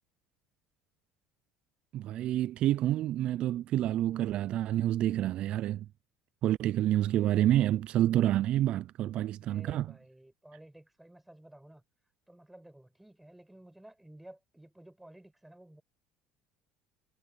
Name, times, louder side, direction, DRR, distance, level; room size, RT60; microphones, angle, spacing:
voice 1, 1.9-5.9 6.4-9.9, right 13 dB, 55° right, 0.4 m, -28 dB
voice 2, 9.4-11.8 12.3-15.8, right 1 dB, 5° right, 5.7 m, -54 dB
supercardioid pair, 100°, 2 cm